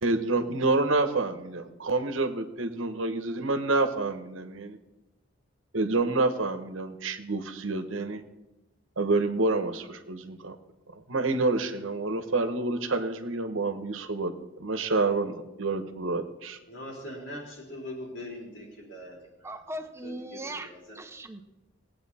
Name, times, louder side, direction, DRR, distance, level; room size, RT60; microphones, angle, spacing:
voice 1, 0.0-4.8 5.7-8.2 9.0-10.6 11.1-14.3 14.6-16.6, right 3 dB, 75° right, 9 dB, 1.1 m, -28 dB
voice 2, 16.7-19.5 20.0-21.0, left 1 dB, 65° left, -2 dB, 4.1 m, -42 dB
voice 3, 19.4-21.4, right 1 dB, 15° right, 7 dB, 0.7 m, -39 dB
20.0 x 8.4 x 4.2 m, 1.0 s
head